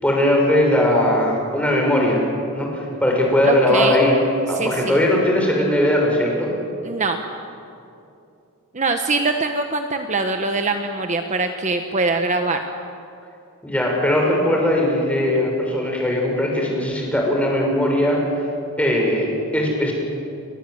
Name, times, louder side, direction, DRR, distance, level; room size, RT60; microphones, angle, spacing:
voice 1, 0.0-2.2 2.5-4.2 4.5-6.5 13.6-18.2 18.8-19.9, left 1 dB, 5° left, -1 dB, 6.0 m, -19 dB
voice 2, 3.4-4.0 4.6-5.0 6.8-7.2 8.7-12.6, right 3 dB, 30° right, 5 dB, 1.2 m, -23 dB
29.5 x 22.5 x 8.0 m, 2.7 s
head